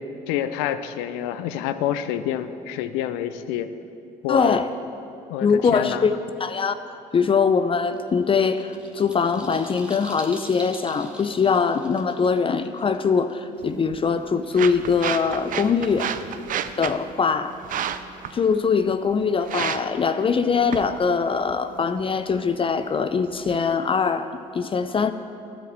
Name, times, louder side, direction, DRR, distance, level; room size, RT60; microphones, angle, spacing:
voice 1, 0.3-3.7 4.2-4.6 5.3-6.1, left 11 dB, 90° left, 12 dB, 0.5 m, -27 dB
voice 2, 4.3-4.7 5.4-6.7 7.1-16.1 16.8-17.6 18.3-25.1, left 5 dB, 35° left, 10 dB, 0.5 m, -22 dB
sound 1, 8.0-13.8, right 1 dB, 5° right, 1.3 m, -44 dB
sound 2, 13.6-23.6, right 9 dB, 55° right, 0.5 m, -34 dB
12.0 x 5.1 x 7.5 m, 2.6 s
supercardioid pair, 65°, 16 cm